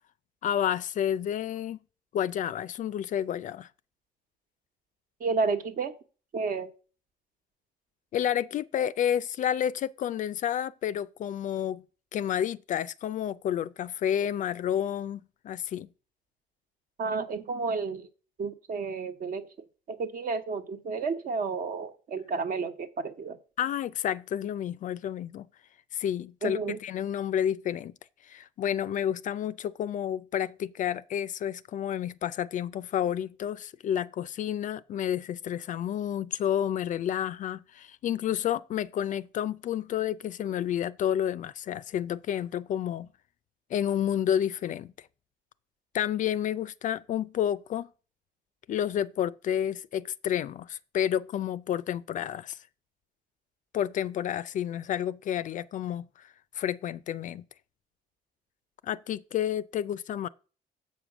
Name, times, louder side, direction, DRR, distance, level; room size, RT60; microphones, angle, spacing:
voice 1, 0.4-1.8 2.1-3.7 8.1-11.8 12.1-15.9 23.6-25.5 25.9-27.9 28.3-43.1 43.7-44.9 45.9-47.9 48.7-52.6 53.7-57.4 58.8-60.3, left 10 dB, 50° left, 0.4 m, -30 dB
voice 2, 5.2-5.9 6.3-6.7 17.0-18.1 18.4-19.5 19.9-23.4 26.4-26.8, right 4 dB, 55° right, 1.2 m, -31 dB
7.6 x 5.2 x 6.1 m
cardioid pair, 110°, 17 cm